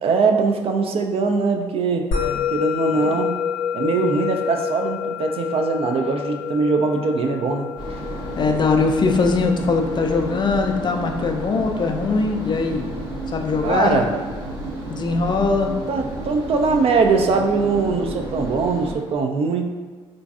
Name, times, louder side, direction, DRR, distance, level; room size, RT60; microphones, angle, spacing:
voice 1, 0.0-2.1 2.5-3.4 3.7-7.7 13.6-14.1 15.9-19.7, right 4 dB, 45° right, 3 dB, 0.4 m, -21 dB
Musical instrument, 2.1-12.7, left 7 dB, 65° left, 0.6 m, -29 dB
voice 2, 2.2-2.5 8.4-12.9 13.3-14.0 14.9-15.7, left 4 dB, 35° left, 4 dB, 0.4 m, -21 dB
sound 1, 7.8-19.0, right 2 dB, 65° right, 1.0 m, -31 dB
3.8 x 2.5 x 2.4 m, 1.4 s
hypercardioid pair, 50°, 14 cm